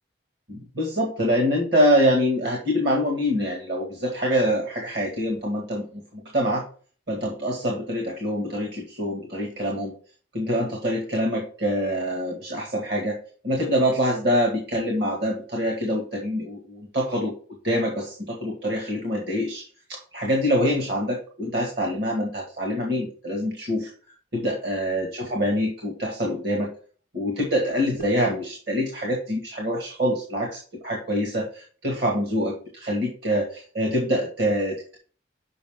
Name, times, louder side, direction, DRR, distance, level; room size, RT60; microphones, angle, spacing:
voice 1, 0.5-6.7 7.1-9.9 10.3-13.2 13.4-17.3 17.6-23.9 24.3-26.7 27.1-35.0, equal, 55° right, 0 dB, 2.0 m, -25 dB
6.9 x 5.6 x 3.7 m, 0.41 s
head